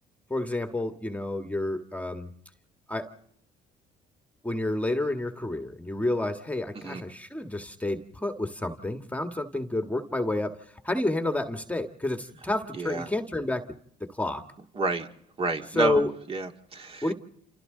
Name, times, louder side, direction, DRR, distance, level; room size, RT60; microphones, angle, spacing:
voice 1, 0.3-2.3 2.9-3.1 4.4-13.7 14.0-14.4 15.7-16.1 17.0-17.1, left 2 dB, 10° left, 6 dB, 1.7 m, -29 dB
voice 2, 12.7-13.1 14.8-15.1 15.4-16.0 16.3-17.1, right 3 dB, 35° right, 4 dB, 2.3 m, -29 dB
28.5 x 28.5 x 3.9 m, 0.69 s
cardioid pair, 110°, 17 cm